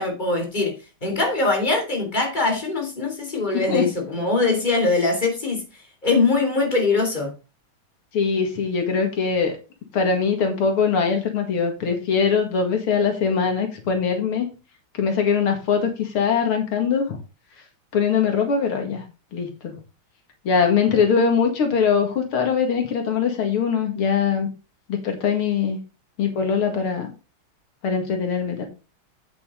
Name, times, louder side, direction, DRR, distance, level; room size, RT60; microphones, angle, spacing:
voice 1, 0.0-5.7 6.0-7.3, left 3 dB, 20° left, 3.3 m, -22 dB
voice 2, 8.1-9.6 9.9-14.5 15.0-17.2 17.9-19.0 19.3-19.7 20.4-24.5 24.9-25.8 26.2-27.1 27.8-28.7, left 6 dB, 85° left, 2.8 m, -22 dB
8.6 x 8.3 x 3.8 m
omnidirectional pair, 2.3 m